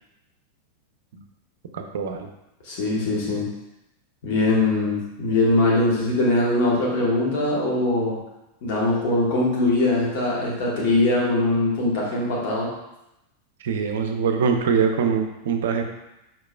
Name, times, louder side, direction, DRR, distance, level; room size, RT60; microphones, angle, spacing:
voice 1, 1.7-2.3 13.6-15.8, right 6 dB, 60° right, 5 dB, 0.5 m, -23 dB
voice 2, 2.6-3.5 4.2-8.2 8.6-12.7, left 2 dB, 45° left, -5 dB, 1.4 m, -22 dB
4.7 x 3.9 x 2.2 m, 0.92 s
figure-of-eight pair, 90°, 0 cm